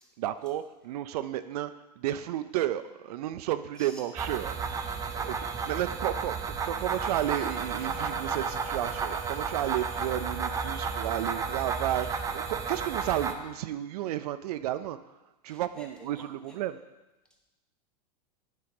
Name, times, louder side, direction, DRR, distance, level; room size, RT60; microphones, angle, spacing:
voice 1, 0.2-4.9 5.1-5.3 5.7-15.0 15.4-16.8, right 12 dB, 70° right, 11 dB, 0.4 m, -32 dB
sound 1, 4.2-13.3, right 5 dB, 15° right, 0.5 m, -32 dB
voice 2, 15.5-15.9 16.2-16.6, equal, 5° left, 0 dB, 1.2 m, -51 dB
9.7 x 3.8 x 5.3 m, 1.0 s
supercardioid pair, 130°, 21 cm